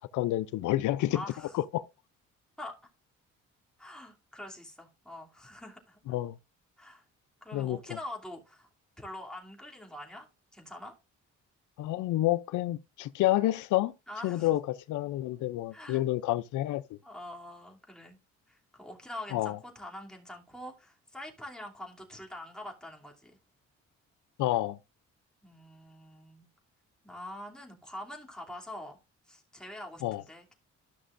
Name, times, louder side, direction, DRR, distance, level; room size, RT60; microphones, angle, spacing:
voice 1, 0.1-1.2 1.5-1.8 6.1-6.4 7.5-7.8 11.8-13.9 14.2-17.0 19.3-19.6 24.4-24.8 30.0-30.2, left 15 dB, 80° left, 0.5 m, -29 dB
voice 2, 1.1-1.6 2.6-2.8 3.8-6.0 6.8-7.0 7.4-8.7 9.0-11.0 14.1-14.5 15.7-16.0 17.0-18.2 18.5-23.4 25.4-26.5 27.0-29.0 29.3-30.5, left 1 dB, ahead, 2.8 m, -45 dB
13.5 x 6.0 x 2.5 m
cardioid pair, 90°, 30 cm